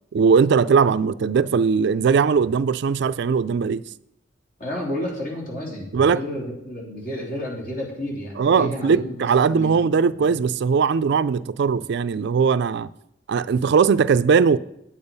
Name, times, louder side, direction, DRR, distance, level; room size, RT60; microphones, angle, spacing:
voice 1, 0.1-3.8 5.9-6.2 8.4-12.9 13.3-14.6, right 5 dB, 65° right, 0.4 m, -19 dB
voice 2, 4.6-10.4, left 1 dB, 50° left, 3.3 m, -31 dB
8.8 x 8.8 x 5.4 m
head